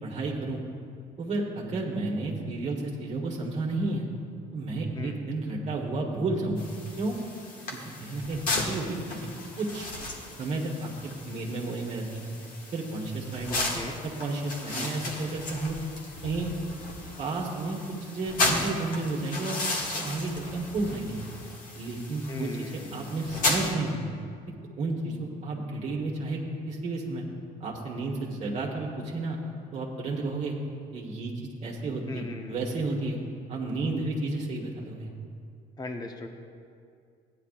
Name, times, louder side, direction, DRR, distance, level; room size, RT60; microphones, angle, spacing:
voice 1, 0.0-0.6 1.2-4.1 4.5-7.1 7.7-9.2 9.6-9.9 10.4-12.3 12.7-15.8 16.2-16.5 17.2-17.8 18.1-19.6 19.9-21.2 21.7-24.0 24.5-26.4 26.7-27.2 27.6-29.4 29.7-30.6 30.9-31.3 31.6-33.2 33.5-35.1, right 2 dB, 45° right, -1 dB, 1.4 m, -32 dB
sound 1, 6.6-23.7, left 2 dB, 60° left, 1.7 m, -34 dB
voice 2, 13.5-14.0 14.8-14.9 18.4-18.7 22.3-23.5 32.1-32.6 35.8-36.3, left 2 dB, 25° left, 4 dB, 0.8 m, -39 dB
15.5 x 10.0 x 2.5 m, 2.3 s
cardioid pair, 115°, 16 cm